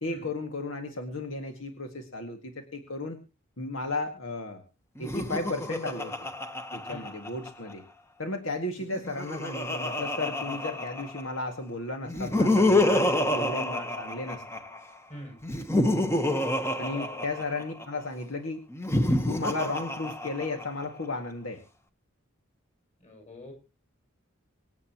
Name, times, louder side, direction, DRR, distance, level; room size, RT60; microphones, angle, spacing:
voice 1, 0.0-3.2 3.6-4.6 5.0-6.3 6.7-7.8 8.2-14.4 16.8-18.6 19.3-21.6, left 2 dB, 70° left, 4 dB, 2.0 m, -34 dB
Laughter, 5.0-7.7 8.8-11.4 12.1-14.8 15.4-17.8 18.7-20.8, left 1 dB, 10° left, 1.1 m, -28 dB
voice 2, 16.8-17.3 23.0-23.5, left 1 dB, 30° left, 2 dB, 6.8 m, -43 dB
26.0 x 8.7 x 3.0 m, 0.31 s
head